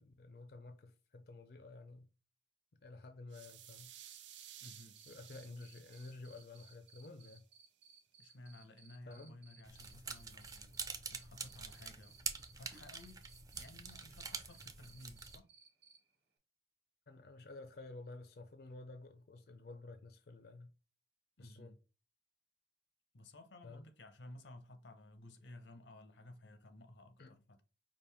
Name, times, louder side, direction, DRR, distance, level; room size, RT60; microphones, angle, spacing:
voice 1, 0.0-2.1 2.8-3.9 5.1-7.4 9.1-9.3 17.1-20.7 21.4-21.7 23.6-23.9 27.2-27.3, left 2 dB, 60° left, 0.5 m, -52 dB
sound 1, 3.3-7.4, right 11 dB, 85° right, 0.5 m, -57 dB
Cricket, 4.0-16.0, right 7 dB, 70° right, 1.1 m, -62 dB
voice 2, 4.6-5.0 8.2-12.2 12.5-13.3 13.5-15.5 21.4-21.8 23.1-27.6, left 1 dB, 85° left, 0.8 m, -56 dB
sound 2, 9.6-15.4, right 5 dB, 20° right, 0.5 m, -46 dB
5.1 x 2.5 x 3.4 m
head